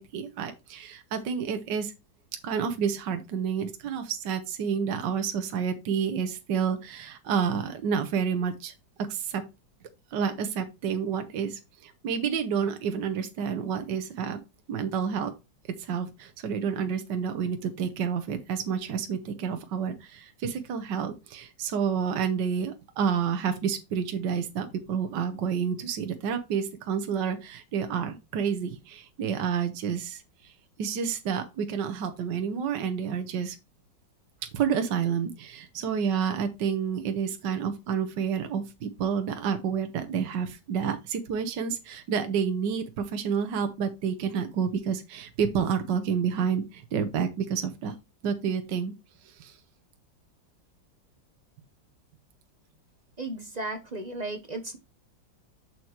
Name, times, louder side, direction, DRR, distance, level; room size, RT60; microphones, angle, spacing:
voice 1, 0.0-1.9 2.4-8.7 9.0-9.4 10.1-14.4 14.7-15.3 15.7-30.5 30.8-33.6 34.5-47.9 48.2-48.9 49.2-49.6, right 7 dB, 70° right, 8 dB, 1.6 m, -29 dB
voice 2, 53.2-54.8, right 2 dB, 35° right, 7 dB, 0.6 m, -35 dB
7.6 x 6.5 x 3.0 m, 0.25 s
omnidirectional pair, 2.0 m